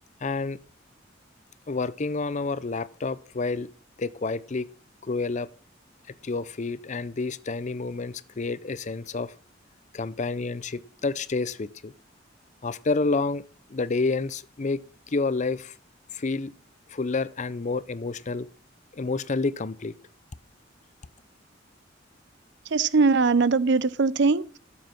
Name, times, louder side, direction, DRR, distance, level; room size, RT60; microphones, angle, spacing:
voice 1, 0.2-0.6 1.7-3.7 4.0-4.7 5.0-5.5 6.2-9.3 9.9-11.9 12.6-13.4 13.7-14.8 15.1-15.7 16.1-16.5 16.9-18.5 18.9-19.9, left 3 dB, 40° left, 0.6 m, -29 dB
voice 2, 22.6-24.6, right 4 dB, 65° right, 0.6 m, -21 dB
14.0 x 7.3 x 6.0 m
head